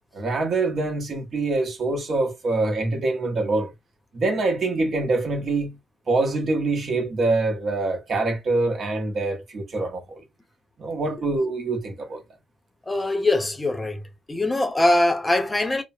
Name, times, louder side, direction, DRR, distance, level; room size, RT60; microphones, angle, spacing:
voice 1, 0.1-3.7 4.1-5.8 6.1-10.2 10.8-12.2, right 2 dB, 50° right, 1.1 m, -25 dB
voice 2, 12.9-14.0 14.3-15.8, left 2 dB, 15° left, 0.7 m, -22 dB
3.1 x 2.1 x 2.7 m
cardioid pair, 90°, 0 cm